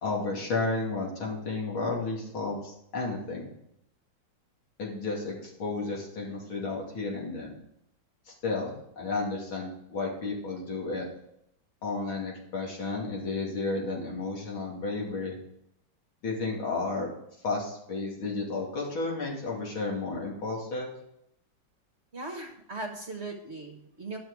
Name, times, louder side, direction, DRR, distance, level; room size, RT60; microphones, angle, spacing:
voice 1, 0.0-3.5 4.8-7.6 8.3-11.1 11.8-15.4 16.2-17.1 17.4-20.9, left 3 dB, 90° left, -2 dB, 3.4 m, -32 dB
voice 2, 22.1-24.2, right 2 dB, 40° right, 2 dB, 1.3 m, -38 dB
11.5 x 6.2 x 4.8 m, 0.76 s
omnidirectional pair, 2.2 m